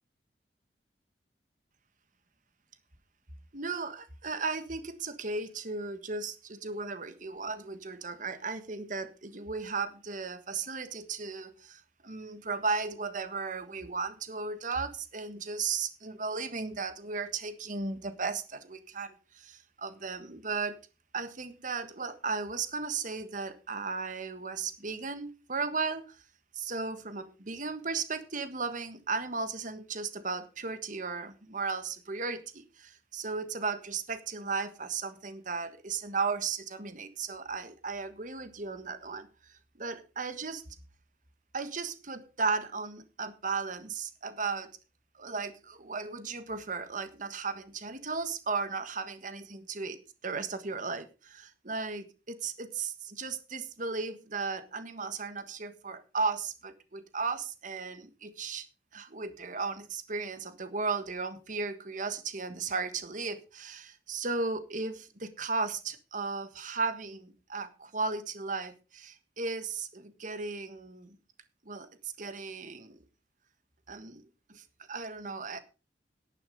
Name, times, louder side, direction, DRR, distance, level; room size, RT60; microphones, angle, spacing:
voice 1, 3.5-20.8 21.1-26.2 26.5-40.6 41.5-44.7 45.2-50.0 50.2-58.6 58.9-71.2 71.6-73.0 73.9-75.6, right 4 dB, 45° right, 11 dB, 1.5 m, -35 dB
11.0 x 9.9 x 5.0 m, 0.32 s
head